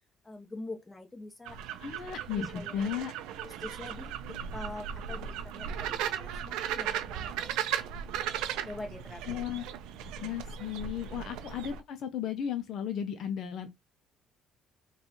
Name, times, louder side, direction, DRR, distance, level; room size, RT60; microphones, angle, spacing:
voice 1, 0.2-1.6 2.0-2.9 3.4-9.4, left 2 dB, 10° left, 0.9 m, -45 dB
sound 1, 1.5-11.8, right 9 dB, 90° right, 0.4 m, -37 dB
voice 2, 1.8-3.1 9.3-9.6 10.2-13.7, left 8 dB, 60° left, 0.5 m, -35 dB
3.9 x 2.3 x 3.0 m
cardioid pair, 140°, 0 cm